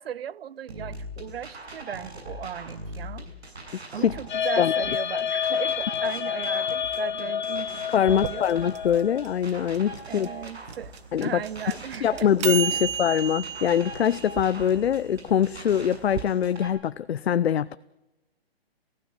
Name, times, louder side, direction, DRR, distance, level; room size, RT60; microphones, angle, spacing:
voice 1, 0.0-3.3 3.9-8.5 10.1-10.9 11.2-12.3 12.7-12.8, right 9 dB, 70° right, 0.8 m, -37 dB
sound 1, 0.7-16.7, right 1 dB, 90° right, 6.7 m, -41 dB
sound 2, 4.3-9.4, left 9 dB, 50° left, 1.2 m, -29 dB
voice 2, 7.9-10.3 11.1-11.4 12.0-17.8, left 9 dB, 75° left, 0.7 m, -23 dB
sound 3, 8.1-16.2, right 9 dB, 30° right, 0.6 m, -34 dB
22.5 x 16.0 x 8.9 m
hypercardioid pair, 150°, 31 cm